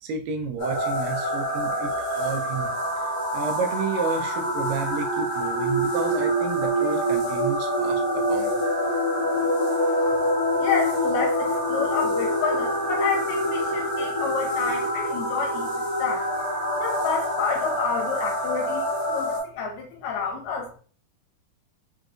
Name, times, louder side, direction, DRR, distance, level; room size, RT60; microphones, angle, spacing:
voice 1, 0.0-3.1 3.3-8.0 8.3-8.6, right 5 dB, 80° right, 3 dB, 2.2 m, -31 dB
sound 1, 0.6-19.4, equal, 40° left, 0.6 m, -26 dB
voice 2, 10.6-15.7 16.0-16.3 16.8-20.8, left 5 dB, 80° left, 1 dB, 2.4 m, -29 dB
6.3 x 2.2 x 2.5 m, 0.42 s
omnidirectional pair, 4.0 m